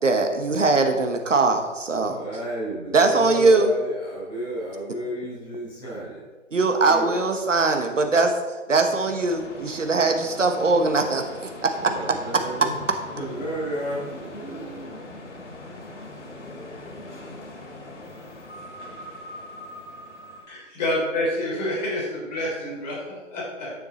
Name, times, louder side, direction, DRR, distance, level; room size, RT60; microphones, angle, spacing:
voice 1, 0.0-2.2 2.9-3.7 6.5-11.9 12.3-12.4, right 3 dB, 75° right, 5 dB, 1.3 m, -21 dB
voice 2, 2.1-6.2 6.8-7.1 11.7-12.8 13.1-15.0, right 1 dB, 10° left, -7 dB, 3.2 m, -32 dB
sound 1, 9.0-20.5, left 1 dB, 65° left, 2.4 m, -41 dB
voice 3, 20.5-23.7, left 1 dB, 35° left, -4 dB, 3.3 m, -28 dB
10.5 x 6.6 x 4.1 m, 1.3 s
figure-of-eight pair, 145°, 38 cm